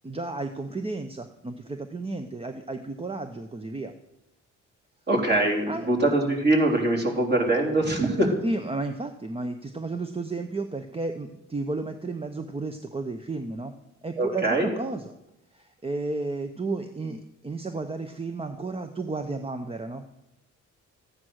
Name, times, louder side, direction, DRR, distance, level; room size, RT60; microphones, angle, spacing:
voice 1, 0.0-3.9 5.7-5.9 8.4-13.7 14.0-15.1 15.5-20.1, right 3 dB, 20° right, 7 dB, 0.8 m, -33 dB
voice 2, 5.1-8.3 14.2-14.7, right 1 dB, 35° right, 0 dB, 3.7 m, -23 dB
14.5 x 9.2 x 6.4 m, 0.90 s
cardioid pair, 90°, 30 cm